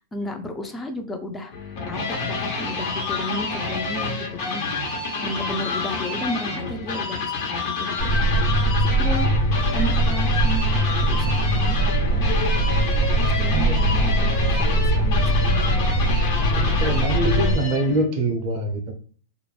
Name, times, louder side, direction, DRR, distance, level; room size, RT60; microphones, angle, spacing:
voice 1, 0.1-1.5 1.9-4.6 5.2-8.1 8.8-9.3 9.7-12.3 13.4-15.9, equal, 15° left, 5 dB, 0.5 m, -33 dB
sound 1, 1.5-18.0, left 4 dB, 50° left, 1.1 m, -28 dB
sound 2, 8.0-17.6, right 1 dB, 90° left, 1.0 m, -21 dB
voice 2, 13.5-14.1 16.7-18.9, right 1 dB, 45° right, 1 dB, 0.6 m, -25 dB
2.4 x 2.0 x 3.2 m, 0.42 s
hypercardioid pair, 120°, 0 cm